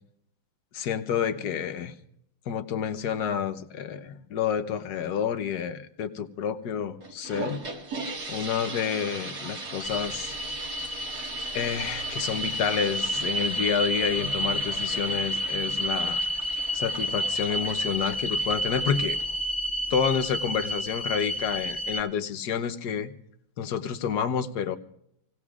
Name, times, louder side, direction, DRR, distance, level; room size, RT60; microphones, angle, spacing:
voice 1, 0.7-1.9 2.5-7.6 8.3-10.3 11.5-16.2 16.7-19.2 19.9-23.1 23.6-24.8, left 8 dB, 60° left, 9 dB, 1.3 m, -29 dB
sound 1, 7.0-19.5, right 3 dB, 55° right, 2.4 m, -38 dB
sound 2, 9.8-22.0, equal, 5° left, 1.6 m, -30 dB
27.5 x 18.0 x 2.4 m, 0.76 s
omnidirectional pair, 2.1 m